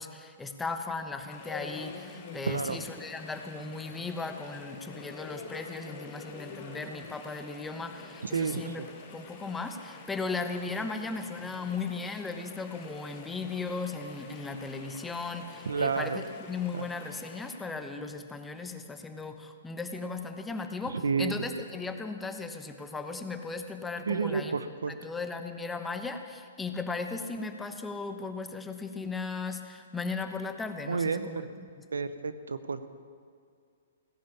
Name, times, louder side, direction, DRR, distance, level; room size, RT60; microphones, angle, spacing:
voice 1, 0.0-8.8 9.1-24.5 24.9-31.4, left 4 dB, 10° left, 6 dB, 1.1 m, -37 dB
Chatter / Stream, 1.3-17.6, left 5 dB, 40° left, 4.0 m, -47 dB
voice 2, 2.4-2.8 8.2-8.9 15.7-16.2 16.7-16.8 20.9-21.4 24.1-24.9 30.8-31.5 31.9-32.9, right 5 dB, 85° right, 12 dB, 0.8 m, -30 dB
17.5 x 10.5 x 7.2 m, 2.2 s
hypercardioid pair, 130°, 0 cm